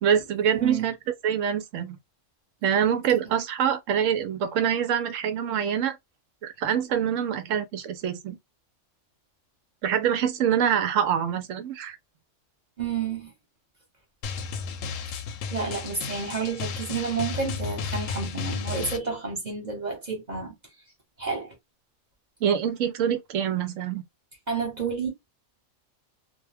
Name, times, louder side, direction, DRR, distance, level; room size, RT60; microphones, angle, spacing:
voice 1, 0.0-1.0 1.2-2.0 2.6-6.0 6.4-8.4 9.8-12.0 22.4-24.0, right 8 dB, 85° right, 1.0 m, -25 dB
voice 2, 0.5-0.9 12.8-13.3 15.5-20.5 21.2-21.5 24.5-25.1, right 5 dB, 40° right, 1.1 m, -30 dB
Drum, 14.2-19.0, left 5 dB, 85° left, 1.0 m, -33 dB
2.4 x 2.2 x 3.3 m
omnidirectional pair, 1.3 m